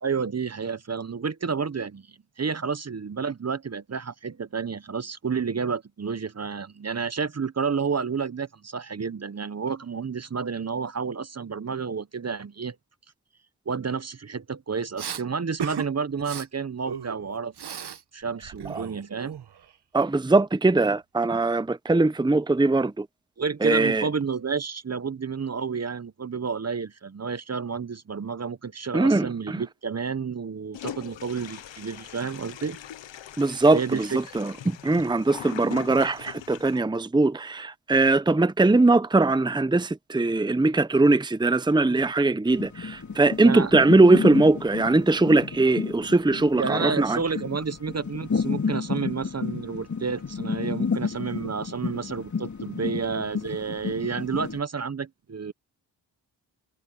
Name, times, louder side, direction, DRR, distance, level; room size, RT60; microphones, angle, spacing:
voice 1, 0.0-12.8 13.7-17.5 18.1-19.4 23.4-32.8 33.7-34.2 43.4-43.7 46.6-55.5, right 5 dB, 35° right, 0.9 m, -30 dB
Respiratory sounds, 15.0-15.2 15.6-15.9 16.2-16.5 16.9-18.0 18.3-19.7, right 8 dB, 65° right, 1.3 m, -36 dB
voice 2, 19.9-23.1 23.6-24.1 28.9-29.6 33.4-47.2, right 2 dB, 10° right, 0.8 m, -21 dB
Toilet flush, 30.7-36.8, left 11 dB, 90° left, 1.1 m, -41 dB
sound 1, 42.5-54.6, left 5 dB, 40° left, 2.6 m, -32 dB
cardioid pair, 55°, 43 cm